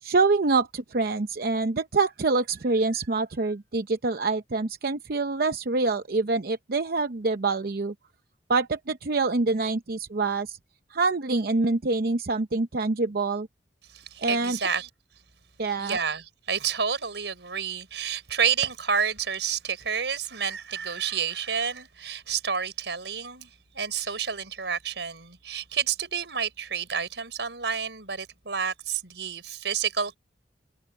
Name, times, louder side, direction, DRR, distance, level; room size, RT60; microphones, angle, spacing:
voice 1, 0.0-7.9 8.5-10.6 10.9-13.5 14.2-14.6 15.6-16.0, right 3 dB, 60° right, 0.7 m, -26 dB
voice 2, 13.9-14.9 15.8-30.2, right 7 dB, 85° right, 4.8 m, -29 dB
head